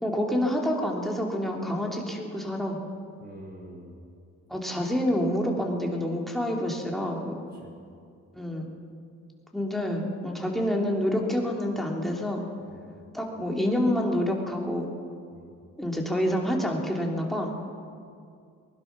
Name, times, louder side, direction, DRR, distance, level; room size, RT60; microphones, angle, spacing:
voice 1, 0.0-2.8 4.5-7.4 8.3-8.7 9.5-12.4 13.1-14.9 15.8-17.5, equal, ahead, -1 dB, 2.8 m, -27 dB
voice 2, 3.2-3.9 7.5-7.7 12.6-12.8 15.3-15.5, right 1 dB, 30° right, -1 dB, 4.8 m, -46 dB
20.0 x 11.5 x 6.0 m, 2.4 s
cardioid pair, 90°, 30 cm